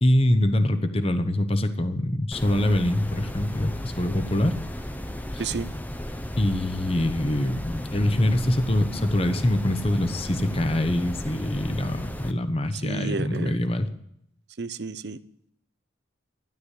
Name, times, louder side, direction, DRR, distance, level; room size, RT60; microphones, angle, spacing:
voice 1, 0.0-4.6 6.4-13.9, left 1 dB, 30° left, 10 dB, 1.0 m, -24 dB
sound 1, 2.3-12.3, left 1 dB, 10° left, 0.7 m, -34 dB
voice 2, 12.7-13.6 14.6-15.2, right 4 dB, 60° right, 14 dB, 0.7 m, -31 dB
13.0 x 11.5 x 8.3 m, 0.74 s
head